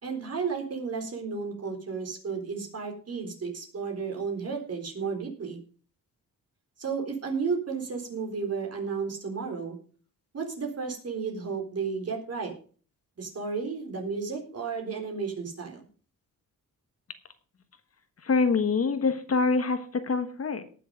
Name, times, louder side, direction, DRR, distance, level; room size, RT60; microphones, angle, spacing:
voice 1, 0.0-5.6 6.8-9.8 10.3-12.5 13.2-15.8, right 5 dB, 45° right, 1 dB, 4.0 m, -33 dB
voice 2, 18.2-20.6, left 4 dB, 45° left, 9 dB, 1.3 m, -25 dB
18.5 x 6.8 x 5.1 m, 0.42 s
wide cardioid pair, 120°, 33 cm